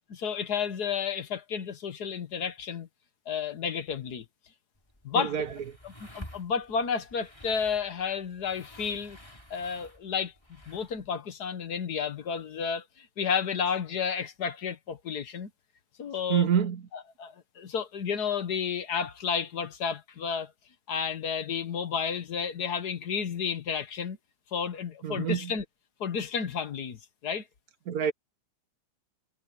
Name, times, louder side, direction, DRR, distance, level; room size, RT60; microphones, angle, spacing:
voice 1, 0.2-2.9 3.3-4.2 5.0-5.4 5.8-9.2 9.5-10.3 10.7-15.5 16.0-16.5 16.9-20.5 20.9-24.2 24.5-25.6 26.0-27.4, left 6 dB, 60° left, 1.8 m, -31 dB
sound 1, 4.8-11.1, left 1 dB, 15° left, 4.8 m, -50 dB
voice 2, 5.2-5.5 16.3-16.8 25.0-25.5 27.9-28.1, right 8 dB, 65° right, 1.1 m, -26 dB
omnidirectional pair, 1.9 m